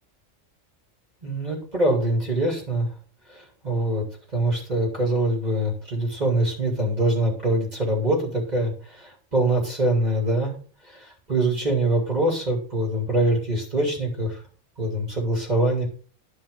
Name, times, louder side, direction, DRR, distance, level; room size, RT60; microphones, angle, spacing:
voice 1, 1.2-2.9 3.6-4.0 4.3-8.7 9.3-10.5 11.3-14.3 14.8-15.9, right 1 dB, 35° right, -1 dB, 2.9 m, -23 dB
11.0 x 5.2 x 5.3 m, 0.41 s
omnidirectional pair, 1.3 m